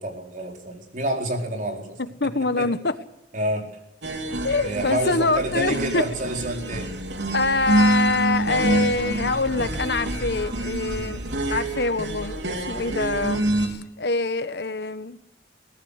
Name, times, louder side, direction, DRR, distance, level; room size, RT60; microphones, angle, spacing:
voice 1, 0.0-2.0 2.6-2.7 3.3-3.7 4.6-6.9 10.9-11.2, right 1 dB, 45° right, 3 dB, 4.2 m, -28 dB
voice 2, 2.0-3.0 4.4-6.1 7.3-11.2 11.5-15.2, left 3 dB, 65° left, 13 dB, 1.2 m, -25 dB
sound 1, 4.0-13.7, right 2 dB, 80° right, 3.7 m, -26 dB
21.5 x 18.5 x 6.6 m, 0.82 s
head